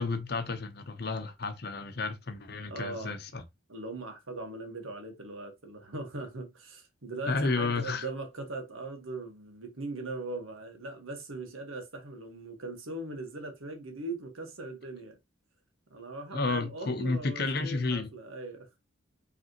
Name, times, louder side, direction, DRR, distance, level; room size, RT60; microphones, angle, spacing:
voice 1, 0.0-3.4 7.3-8.1 16.3-18.1, left 3 dB, 50° left, 0.8 m, -31 dB
voice 2, 2.7-3.2 3.7-15.2 15.9-18.7, right 2 dB, 85° right, 1.5 m, -40 dB
5.3 x 3.3 x 3.0 m
head